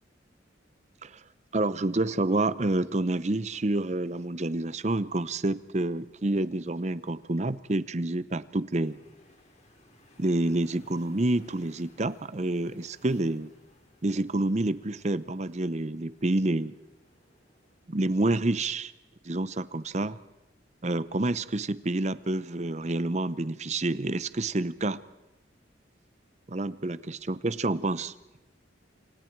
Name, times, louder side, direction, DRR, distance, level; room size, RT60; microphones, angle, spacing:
voice 1, 1.5-9.0 10.2-13.5 14.0-16.7 17.9-18.9 19.2-20.2 20.8-25.0 26.5-28.1, right 2 dB, 35° right, 16 dB, 0.7 m, -28 dB
sound 1, 8.8-17.8, left 1 dB, 35° left, 4.0 m, -60 dB
29.0 x 27.0 x 4.6 m, 1.0 s
head